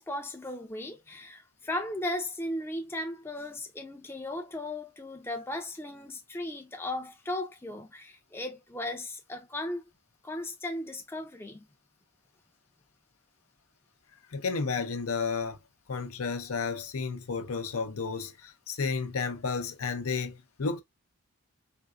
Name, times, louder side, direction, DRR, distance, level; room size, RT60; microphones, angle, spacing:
voice 1, 0.0-9.8 10.2-11.7, left 1 dB, 10° left, 0.5 m, -36 dB
voice 2, 14.3-15.6 15.9-20.8, left 4 dB, 80° left, 0.7 m, -32 dB
3.6 x 2.6 x 2.2 m
head